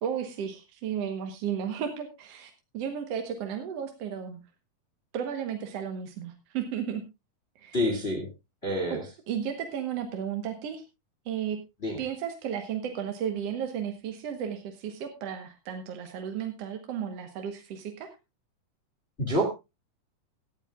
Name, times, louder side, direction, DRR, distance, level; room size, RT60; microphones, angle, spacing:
voice 1, 0.0-4.4 5.1-7.0 7.6-7.8 8.9-9.0 9.3-10.8 11.3-11.6 12.0-18.2, right 8 dB, 60° right, 5 dB, 1.9 m, -34 dB
voice 2, 7.7-8.3 8.6-9.0 11.8-12.0 19.2-19.7, equal, 20° left, 2 dB, 2.1 m, -27 dB
17.5 x 12.0 x 2.4 m, 0.24 s
omnidirectional pair, 3.9 m